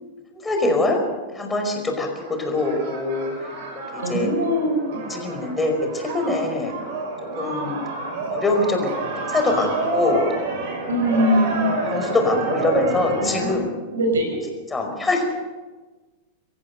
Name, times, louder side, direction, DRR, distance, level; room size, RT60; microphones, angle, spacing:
voice 1, 0.3-1.0 1.3-2.1 2.4-3.3 3.9-4.3 5.0-6.7 7.4-7.8 8.3-8.9 9.2-10.3 11.0-11.3 11.9-13.7 14.7-15.2, left 2 dB, 15° left, 3 dB, 5.2 m, -23 dB
sound 1, 2.2-13.5, right 3 dB, 50° right, 6.8 m, -29 dB
voice 2, 4.0-4.8 10.9-11.7 13.9-14.4, equal, 70° right, 3 dB, 6.0 m, -21 dB
26.0 x 15.5 x 6.7 m, 1.2 s
figure-of-eight pair, 90°, 0 cm